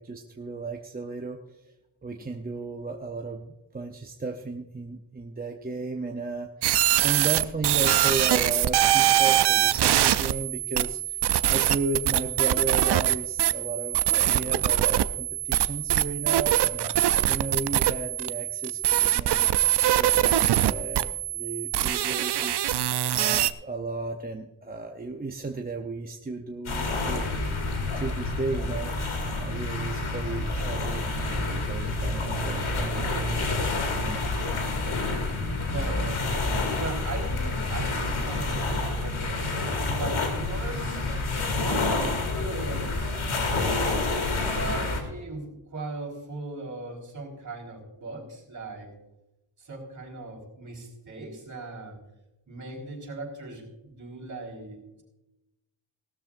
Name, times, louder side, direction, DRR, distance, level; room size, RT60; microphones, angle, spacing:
voice 1, 0.0-1.7 2.0-16.9 17.3-19.5 19.9-22.6 23.2-27.3 28.0-28.9 29.4-31.3 31.5-33.3 34.0-34.3, right 3 dB, 20° right, 3 dB, 0.7 m, -34 dB
sound 1, 6.6-23.5, right 12 dB, 60° right, 0.5 m, -23 dB
sound 2, 26.7-45.0, left 2 dB, 90° left, 2.6 m, -28 dB
voice 2, 35.6-36.5 36.8-41.0 41.5-43.3 44.0-48.9 49.6-52.0 52.5-55.0, right 2 dB, 40° right, -1 dB, 4.3 m, -39 dB
18.0 x 13.0 x 2.5 m, 0.95 s
wide cardioid pair, 165°, 47 cm